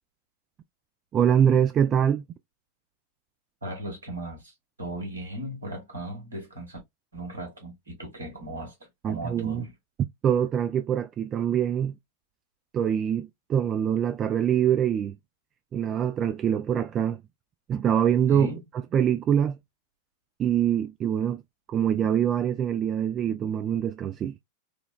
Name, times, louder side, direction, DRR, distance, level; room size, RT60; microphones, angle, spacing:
voice 1, 1.1-2.2 9.0-9.7 10.2-12.0 12.7-15.2 15.7-17.2 17.7-18.5 18.9-19.6 20.4-21.4 21.7-24.4, right 9 dB, 30° right, 0.3 m, -24 dB
voice 2, 3.6-4.5 4.8-6.8 7.1-8.7 9.0-9.7 18.3-18.6, right 1 dB, 75° right, 1.6 m, -36 dB
4.4 x 2.2 x 2.3 m
figure-of-eight pair, 90°, 0 cm